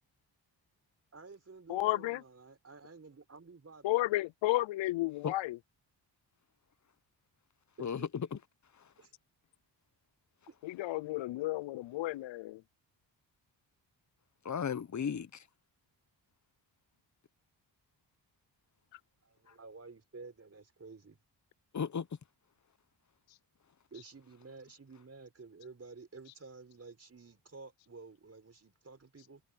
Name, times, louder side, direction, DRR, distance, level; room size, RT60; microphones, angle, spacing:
voice 1, 1.1-4.0 7.8-8.1 9.0-9.1 10.5-10.6 19.2-21.2 23.9-29.4, right 4 dB, 35° right, 5.4 m, -52 dB
voice 2, 1.7-2.2 3.8-5.6 10.6-12.6, left 17 dB, 85° left, 0.6 m, -32 dB
voice 3, 7.8-8.4 14.4-15.4 19.5-19.6 21.7-22.1, left 7 dB, 40° left, 1.0 m, -35 dB
cardioid pair, 70°, 44 cm